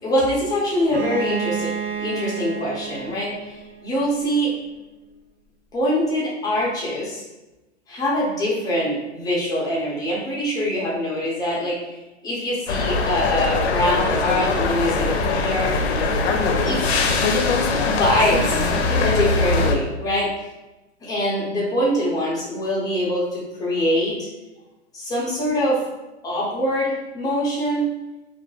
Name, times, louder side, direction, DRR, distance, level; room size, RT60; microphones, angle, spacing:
voice 1, 0.0-1.7 2.0-4.6 5.7-7.2 7.9-11.9 12.2-15.9 16.6-16.8 17.8-20.3 21.0-24.3 24.9-25.8 26.2-27.9, equal, 10° left, -5 dB, 0.6 m, -24 dB
Bowed string instrument, 0.9-4.6, right 6 dB, 60° right, 0.5 m, -31 dB
sound 1, 12.7-19.8, left 3 dB, 65° left, 0.5 m, -21 dB
2.3 x 2.0 x 3.0 m, 1.0 s
hypercardioid pair, 125°, 35 cm